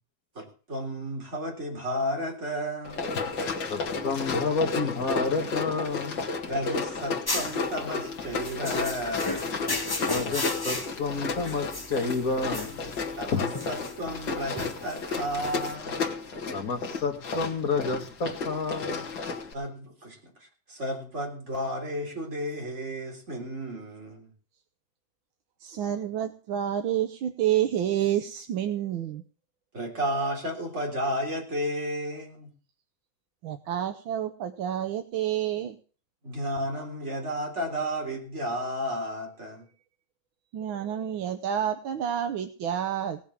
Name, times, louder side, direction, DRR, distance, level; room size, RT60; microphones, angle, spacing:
voice 1, 0.4-3.3 6.5-9.6 13.2-16.1 19.5-24.3 29.7-32.5 36.2-39.7, equal, 35° right, 1 dB, 4.1 m, -33 dB
Run, 2.8-19.5, left 4 dB, 65° left, 2.7 m, -33 dB
voice 2, 3.7-6.3 10.0-12.9 13.3-13.4 16.5-19.1, left 4 dB, 45° left, 5 dB, 2.3 m, -30 dB
sound 1, 7.3-15.7, left 2 dB, 15° left, 0.9 m, -35 dB
voice 3, 25.6-29.2 33.4-35.8 40.5-43.2, right 10 dB, 85° right, 8 dB, 1.7 m, -29 dB
17.5 x 7.3 x 7.3 m, 0.40 s
omnidirectional pair, 2.2 m